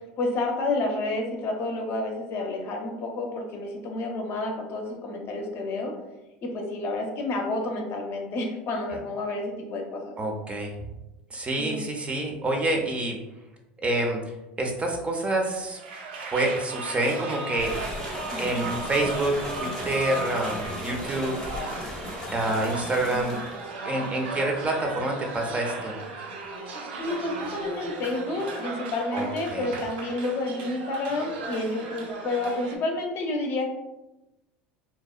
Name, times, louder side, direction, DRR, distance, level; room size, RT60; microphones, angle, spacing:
voice 1, 0.2-5.9 6.4-10.1 11.6-11.9 18.3-18.7 23.0-23.4 27.0-33.7, left 2 dB, 50° left, 2 dB, 0.6 m, -30 dB
voice 2, 10.2-10.8 11.3-13.2 13.8-14.2 14.6-15.8 16.3-17.7 18.4-21.4 22.3-23.4 23.8-25.9 29.1-29.6, right 2 dB, 25° right, 1 dB, 0.5 m, -27 dB
sound 1, 15.7-32.8, right 3 dB, 80° right, 0.4 m, -36 dB
sound 2, 17.6-23.7, left 1 dB, 15° left, 0.7 m, -36 dB
2.6 x 2.1 x 2.4 m, 0.99 s
hypercardioid pair, 85°, 5 cm